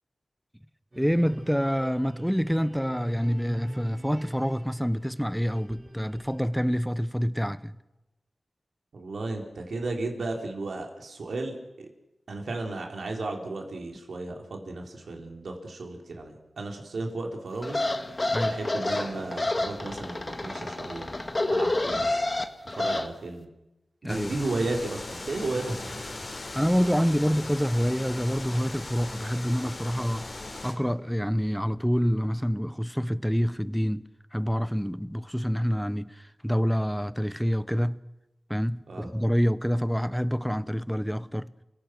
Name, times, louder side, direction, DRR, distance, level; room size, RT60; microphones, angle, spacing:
sound 1, 0.9-6.4, right 1 dB, 45° right, 6.3 m, -44 dB
voice 1, 1.0-7.8 18.3-18.6 24.0-24.4 26.6-30.3 30.6-34.0 34.3-38.0 38.5-41.5, equal, ahead, 0.9 m, -27 dB
voice 2, 8.9-11.9 12.3-17.8 18.4-21.1 21.5-22.1 22.8-23.5 24.0-26.0 38.9-39.1, right 2 dB, 80° right, 4.0 m, -34 dB
sound 2, 17.6-23.1, left 2 dB, 30° left, 1.8 m, -29 dB
sound 3, 24.1-30.7, left 2 dB, 50° left, 3.9 m, -39 dB
29.5 x 17.0 x 6.1 m
cardioid pair, 60°, 0 cm